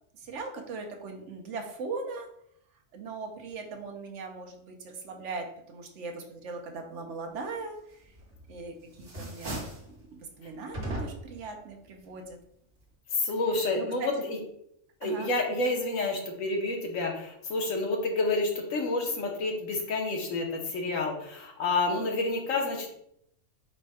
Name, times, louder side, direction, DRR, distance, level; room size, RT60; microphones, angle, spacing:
voice 1, 0.1-2.3 2.9-8.0 8.5-9.6 9.9-12.4 13.8-14.1 15.0-15.3, right 4 dB, 70° right, 3 dB, 1.0 m, -39 dB
sound 1, 8.2-8.6 8.9-9.9 10.7-11.4, right 1 dB, 45° right, 1.3 m, -36 dB
voice 2, 13.1-14.4 15.0-22.9, left 2 dB, 85° left, 1 dB, 1.3 m, -29 dB
5.1 x 2.2 x 4.7 m, 0.74 s
omnidirectional pair, 1.4 m